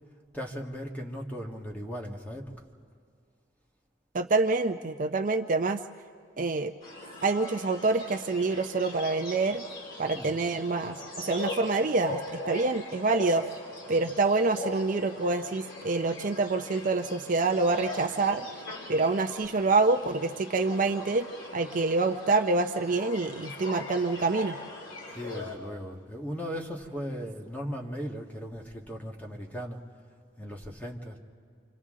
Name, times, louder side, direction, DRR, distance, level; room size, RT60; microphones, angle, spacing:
voice 1, 0.3-2.5 10.1-10.3 25.1-29.8 30.4-31.2, equal, 10° left, -1 dB, 1.5 m, -37 dB
voice 2, 4.1-5.8 6.4-6.7 7.2-9.6 10.0-12.2 12.5-13.5 13.9-18.5 18.9-21.3 21.5-24.5, right 3 dB, 45° right, 7 dB, 0.5 m, -26 dB
sound 1, 6.8-25.6, left 2 dB, 85° left, 4.0 m, -41 dB
28.0 x 26.0 x 3.7 m, 2.3 s
head